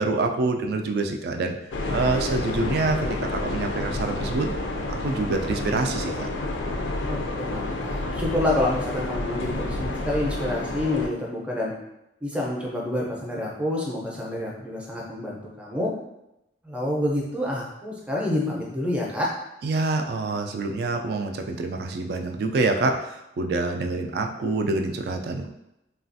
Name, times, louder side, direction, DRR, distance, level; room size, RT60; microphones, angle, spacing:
voice 1, 0.0-1.6 1.9-4.5 4.9-6.3 19.6-25.5, right 3 dB, 60° right, 4 dB, 0.3 m, -26 dB
sound 1, 1.7-11.1, left 2 dB, 85° left, 0.4 m, -29 dB
voice 2, 7.0-11.7 12.2-15.9 16.6-19.3, left 1 dB, 5° right, -3 dB, 0.5 m, -28 dB
3.2 x 2.4 x 2.6 m, 0.88 s
head